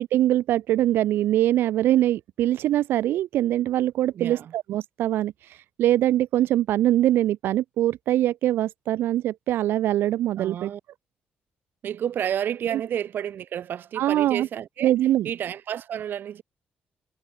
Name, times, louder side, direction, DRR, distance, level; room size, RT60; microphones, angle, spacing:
voice 1, 0.0-10.7 14.0-14.5 14.8-15.3, right 13 dB, 85° right, 1.2 m, -23 dB
voice 2, 4.1-4.5 10.3-10.8 11.8-14.9 15.2-16.4, right 9 dB, 65° right, 2.0 m, -30 dB
cardioid pair, 105°, 4 cm